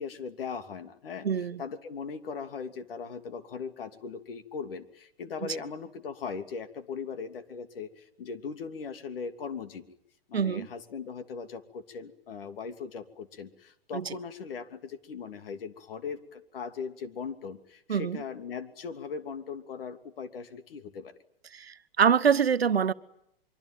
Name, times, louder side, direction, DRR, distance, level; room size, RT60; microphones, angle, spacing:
voice 1, 0.0-9.9 10.3-21.1, left 5 dB, 65° left, 3.0 m, -39 dB
voice 2, 1.2-1.6 5.4-5.6 10.3-10.7 13.9-14.1 17.9-18.2 21.5-22.9, right 7 dB, 80° right, 1.3 m, -25 dB
24.5 x 24.5 x 9.2 m
hypercardioid pair, 110°, 30 cm